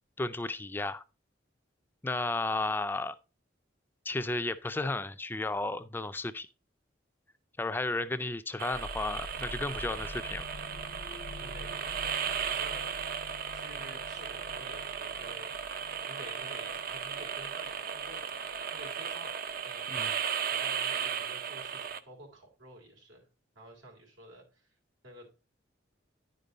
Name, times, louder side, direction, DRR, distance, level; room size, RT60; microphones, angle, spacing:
voice 1, 0.2-1.0 2.0-3.2 4.1-6.5 7.6-10.4 19.9-20.1, left 2 dB, 10° left, 0.3 m, -33 dB
sound 1, 8.6-22.0, right 7 dB, 50° right, 0.5 m, -36 dB
sound 2, 8.7-20.1, left 1 dB, 90° left, 0.8 m, -48 dB
voice 2, 11.4-11.9 12.5-13.0 13.5-15.5 16.1-18.2 18.7-19.3 19.6-19.9 20.5-23.3 23.6-24.7 25.0-25.3, right 1 dB, 90° right, 3.7 m, -50 dB
10.0 x 5.3 x 3.9 m
head